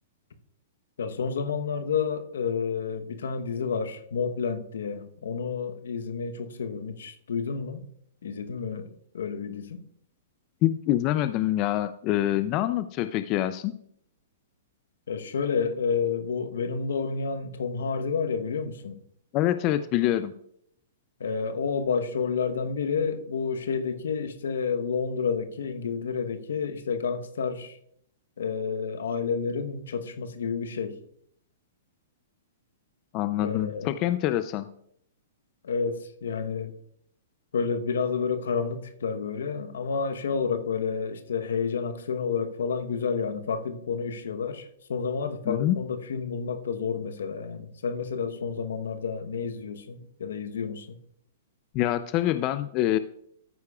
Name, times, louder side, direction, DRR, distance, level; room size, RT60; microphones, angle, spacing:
voice 1, 1.0-7.8 8.2-9.8 15.1-19.0 21.2-27.8 28.4-31.0 33.4-34.0 35.6-36.7 37.5-51.0, left 5 dB, 80° left, 1.0 m, -30 dB
voice 2, 10.6-13.7 19.3-20.3 33.1-34.7 45.5-45.8 51.7-53.0, left 13 dB, 40° left, 0.4 m, -25 dB
13.5 x 9.5 x 2.4 m
hypercardioid pair, 125°, 0 cm